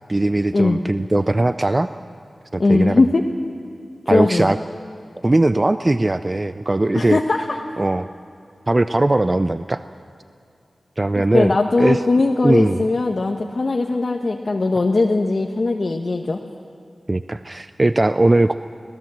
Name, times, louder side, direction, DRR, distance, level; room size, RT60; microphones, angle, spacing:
voice 1, 0.1-1.9 2.5-3.0 4.1-4.6 5.2-7.2 7.8-8.1 8.7-9.8 11.0-12.0 12.4-12.8 17.1-18.5, right 2 dB, 30° right, 11 dB, 0.4 m, -19 dB
voice 2, 2.6-3.3 4.1-4.5 6.9-7.6 11.2-16.4, left 3 dB, 50° left, 2 dB, 1.1 m, -19 dB
24.5 x 18.0 x 7.6 m, 2.4 s
wide cardioid pair, 90°, 0 cm